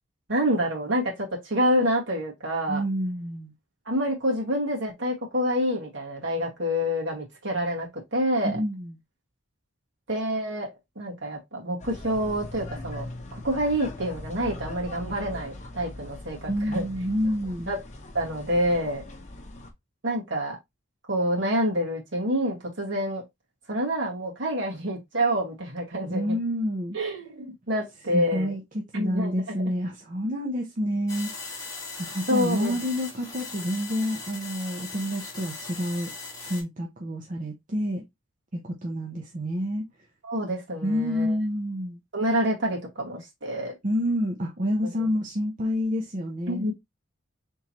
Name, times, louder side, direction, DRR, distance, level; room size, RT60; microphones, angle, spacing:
voice 1, 0.3-2.8 3.9-8.6 10.1-10.7 11.0-16.9 17.7-17.8 18.1-19.0 20.0-20.6 21.1-23.2 23.7-26.4 26.9-28.6 28.9-29.4 32.3-32.8 40.2-41.4 42.1-43.7 46.5-46.7, equal, 65° right, 1.9 m, -27 dB
voice 2, 2.7-3.5 8.4-8.9 16.5-17.7 26.1-27.0 28.1-31.3 32.0-36.1 36.5-38.0 38.5-39.8 40.8-42.0 43.8-46.7, equal, 40° right, 0.7 m, -28 dB
sound 1, 11.8-19.7, left 2 dB, 35° left, 0.8 m, -40 dB
sound 2, 31.1-36.6, left 3 dB, 20° left, 1.6 m, -39 dB
4.3 x 3.7 x 2.9 m
head